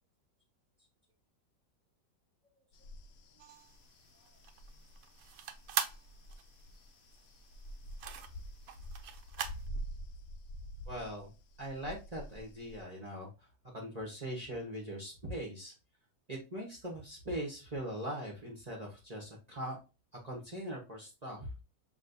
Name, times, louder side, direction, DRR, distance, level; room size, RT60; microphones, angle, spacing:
sound 1, 2.7-12.8, equal, 75° left, 0.6 m, -47 dB
sound 2, 3.4-9.7, right 9 dB, 70° right, 0.9 m, -41 dB
voice 1, 10.9-11.3 11.6-13.5 13.7-15.7 16.3-19.8 20.2-21.5, equal, 30° right, -2 dB, 0.9 m, -41 dB
6.2 x 3.0 x 2.6 m, 0.30 s
omnidirectional pair, 1.9 m